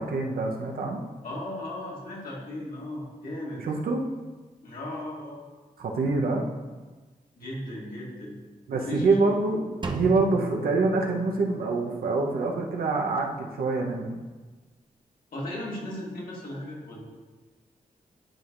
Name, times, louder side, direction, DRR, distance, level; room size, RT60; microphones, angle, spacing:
voice 1, 0.0-1.0 3.6-4.0 5.8-6.4 8.7-14.2, right 3 dB, 90° right, 1 dB, 0.9 m, -26 dB
voice 2, 1.2-3.6 4.6-5.5 7.3-8.4 8.7-9.2 15.3-17.0, left 1 dB, 70° left, -5 dB, 2.2 m, -36 dB
Drum, 9.8-11.7, right 3 dB, 30° right, 0.7 m, -36 dB
11.5 x 4.5 x 2.6 m, 1.3 s
cardioid pair, 70°, 15 cm